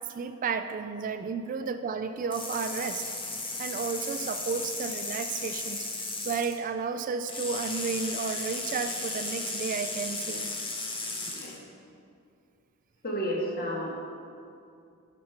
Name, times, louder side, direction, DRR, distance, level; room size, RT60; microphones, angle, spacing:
voice 1, 0.1-3.1 3.6-10.5, right 5 dB, 35° right, 9 dB, 0.3 m, -32 dB
sound 1, 2.3-6.6 7.3-11.6, left 3 dB, 25° left, 0.9 m, -35 dB
voice 2, 13.0-14.0, equal, 40° left, -3 dB, 1.6 m, -31 dB
7.2 x 6.2 x 5.9 m, 2.5 s
head